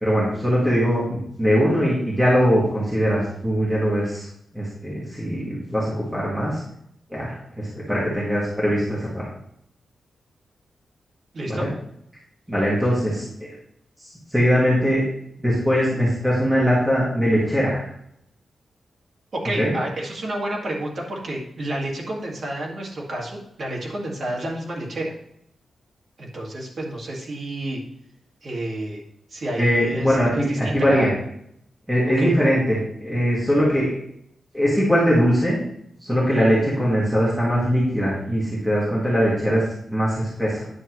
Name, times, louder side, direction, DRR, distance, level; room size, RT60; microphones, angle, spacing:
voice 1, 0.0-4.3 4.5-6.6 7.1-9.3 11.5-11.7 12.5-13.5 14.0-15.1 15.4-17.8 19.6-19.7 29.6-31.1 31.9-34.0 34.5-35.6 36.0-40.7, equal, 5° right, -7 dB, 1.7 m, -21 dB
voice 2, 11.3-11.7 19.3-25.1 26.2-27.8 28.4-29.0 29.3-31.1 32.2-32.3, right 1 dB, 45° right, -2 dB, 1.8 m, -30 dB
9.7 x 6.7 x 3.0 m, 0.73 s
wide cardioid pair, 175°, 0 cm